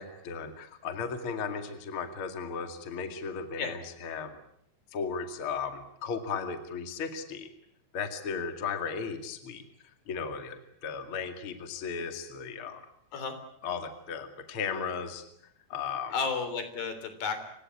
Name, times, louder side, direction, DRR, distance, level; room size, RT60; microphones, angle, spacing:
voice 1, 0.0-4.4 4.9-7.5 7.9-9.6 10.1-12.9 13.6-15.2 15.7-16.2, left 5 dB, 40° left, 7 dB, 2.7 m, -35 dB
voice 2, 16.1-17.4, left 5 dB, 75° left, 9 dB, 5.3 m, -32 dB
29.0 x 17.0 x 9.8 m, 0.71 s
omnidirectional pair, 4.2 m